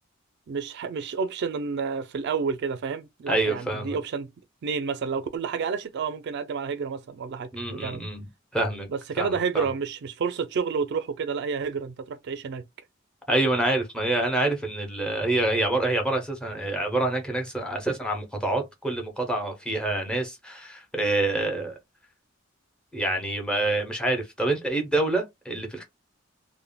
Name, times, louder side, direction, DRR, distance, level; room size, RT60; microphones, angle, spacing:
voice 1, 0.5-4.3 4.6-8.0 8.9-12.6, right 5 dB, 55° right, 0.4 m, -30 dB
voice 2, 3.3-4.0 7.5-8.3 8.5-8.9 9.2-9.7 13.3-21.8 22.9-25.8, right 2 dB, 5° left, 0.7 m, -27 dB
3.3 x 2.1 x 2.2 m
head